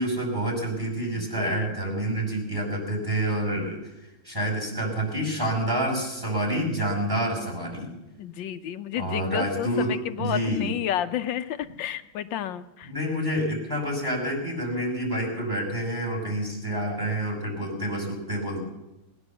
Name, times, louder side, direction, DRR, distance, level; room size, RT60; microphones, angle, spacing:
voice 1, 0.0-3.8 4.2-7.9 9.0-10.7 12.8-18.6, right 1 dB, 10° right, -2 dB, 5.4 m, -28 dB
voice 2, 1.2-1.7 8.2-12.9, left 11 dB, 75° left, 11 dB, 1.3 m, -31 dB
20.0 x 9.9 x 7.1 m, 0.98 s
omnidirectional pair, 2.2 m